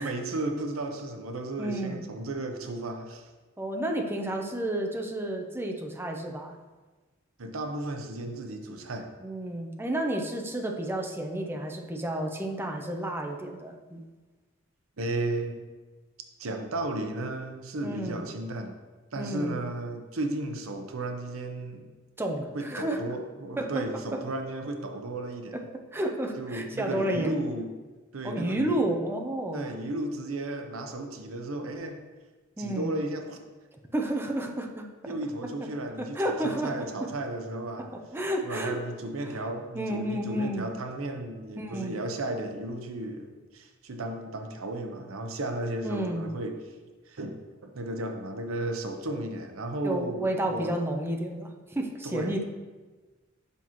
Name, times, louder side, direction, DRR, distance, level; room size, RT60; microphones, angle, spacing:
voice 1, 0.0-3.3 7.4-9.1 15.0-15.7 16.4-18.7 19.1-21.9 22.5-25.6 26.4-27.7 28.1-28.9 29.5-32.0 32.6-33.4 35.0-37.9 38.4-46.6 47.1-50.7 52.0-52.4, right 2 dB, 80° right, 4 dB, 0.7 m, -34 dB
voice 2, 1.6-2.1 3.6-6.6 9.2-14.0 17.8-18.2 19.2-19.6 22.2-23.0 23.6-23.8 25.5-25.6 25.9-27.4 28.2-29.7 32.6-32.9 33.9-34.9 36.0-37.1 37.9-38.8 39.7-40.7 41.6-42.0 45.8-46.3 49.8-52.4, right 1 dB, 10° right, 2 dB, 0.6 m, -31 dB
7.0 x 5.6 x 3.0 m, 1.3 s
head